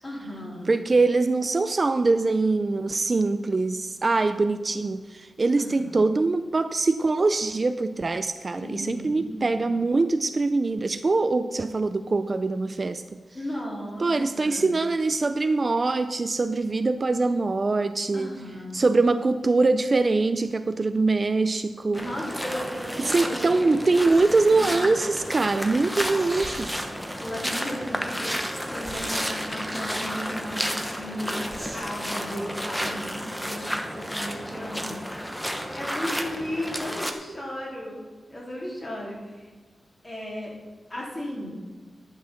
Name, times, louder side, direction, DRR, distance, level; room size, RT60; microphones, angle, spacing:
voice 1, 0.0-0.8 5.6-6.0 8.6-9.7 13.3-14.7 18.1-18.9 21.9-24.0 24.5-24.7 27.2-35.4 35.7-38.0 38.3-39.5 40.0-40.5 40.9-41.5, left 1 dB, 25° left, -4 dB, 3.7 m, -35 dB
voice 2, 0.7-13.2 14.0-18.3 18.7-22.0 23.0-26.9, right 3 dB, 35° right, 10 dB, 0.4 m, -23 dB
sound 1, 21.9-37.1, equal, 5° left, 1.0 m, -32 dB
sound 2, 24.0-24.7 25.7-25.8 26.0-27.0 28.8-29.6 31.5-32.0, right 1 dB, 15° right, 2.5 m, -41 dB
11.0 x 6.0 x 7.2 m, 1.3 s
wide cardioid pair, 120°, 0 cm